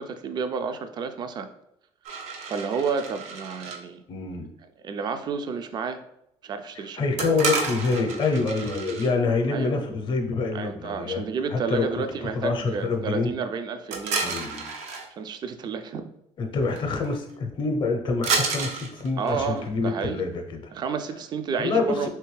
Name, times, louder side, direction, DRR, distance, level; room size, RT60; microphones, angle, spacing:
voice 1, 0.0-1.5 2.5-4.0 4.8-6.1 6.4-7.0 9.5-9.8 10.5-14.4 15.2-16.1 19.2-20.2 20.7-22.1, right 5 dB, 40° right, 9 dB, 0.3 m, -31 dB
sound 1, 2.0-3.8 7.2-9.1 13.9-15.1 16.7-16.8 17.0-17.3 18.2-19.7, right 4 dB, 85° right, 0.6 m, -30 dB
voice 2, 4.1-4.4 6.8-11.2 11.5-13.3 14.2-14.7 16.4-20.7 21.6-22.1, left 3 dB, 45° left, 4 dB, 0.6 m, -26 dB
3.3 x 3.0 x 3.2 m, 0.77 s
cardioid pair, 130°, 11 cm